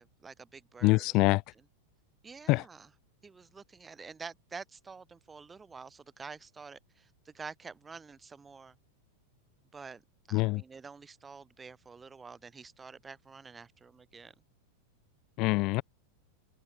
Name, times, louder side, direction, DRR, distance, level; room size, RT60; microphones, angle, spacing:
voice 1, 0.0-1.2 2.2-2.9 3.2-8.7 9.7-10.0 10.3-14.3, right 5 dB, 15° right, 6.4 m, -48 dB
voice 2, 0.8-1.4 2.5-2.6 10.3-10.6 15.4-15.8, left 23 dB, 40° left, 0.7 m, -25 dB
open air
figure-of-eight pair, 90°, 0 cm